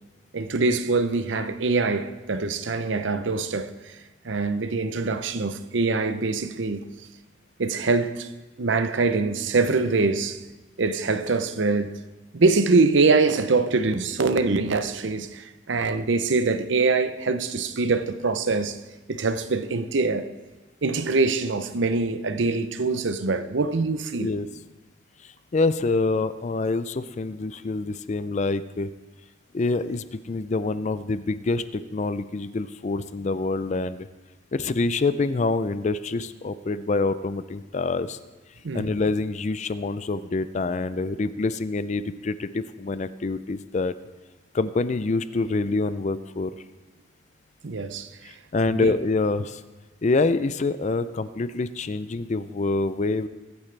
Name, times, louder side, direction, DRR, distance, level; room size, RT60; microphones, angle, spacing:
voice 1, 0.3-3.7 4.2-6.8 7.6-8.3 8.6-10.4 10.8-12.0 12.3-18.8 19.1-20.3 20.8-24.3 38.6-38.9 47.6-48.1 48.7-48.9, right 3 dB, 65° right, 0.7 m, -24 dB
voice 2, 25.5-28.9 29.5-34.1 34.5-38.2 38.7-43.9 44.5-46.5 48.5-49.6 50.0-53.3, left 3 dB, 35° left, 0.4 m, -26 dB
22.0 x 8.9 x 3.3 m
head